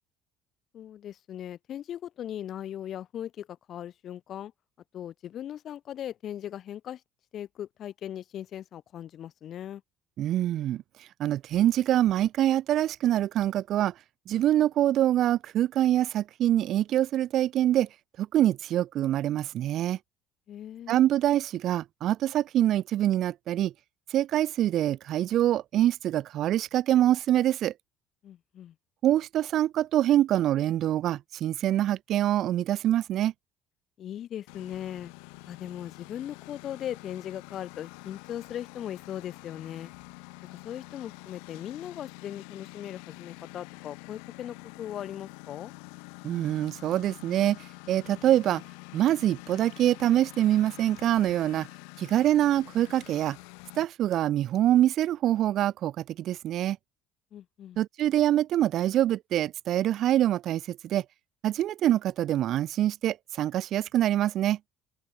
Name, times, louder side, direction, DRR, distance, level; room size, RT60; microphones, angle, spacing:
voice 1, 0.7-4.5 4.9-7.0 7.3-9.8 20.5-21.0 28.2-28.7 34.0-35.1 35.5-39.9 40.6-45.7 57.3-57.8, left 10 dB, 55° left, 4.8 m, -39 dB
voice 2, 10.2-10.8 11.2-13.9 14.3-17.9 18.2-20.0 20.9-23.7 24.1-27.7 29.0-33.3 46.2-48.6 48.9-51.7 52.0-53.4 53.8-56.8 57.8-61.0 61.4-64.6, right 12 dB, 60° right, 0.7 m, -25 dB
Engine, 34.5-53.8, left 40 dB or more, 85° left, 3.5 m, -47 dB
open air
supercardioid pair, 90°, 0 cm